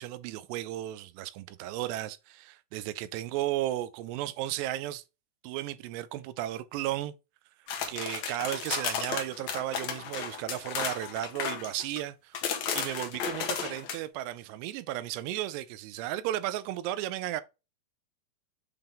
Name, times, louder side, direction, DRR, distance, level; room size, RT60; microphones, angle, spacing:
voice 1, 0.0-5.0 5.4-7.1 7.9-12.4 12.7-17.4, right 14 dB, 85° right, 2.7 m, -34 dB
sound 1, 7.7-12.0 12.3-14.0, left 7 dB, 70° left, 1.7 m, -34 dB
7.9 x 3.6 x 3.6 m
omnidirectional pair, 4.8 m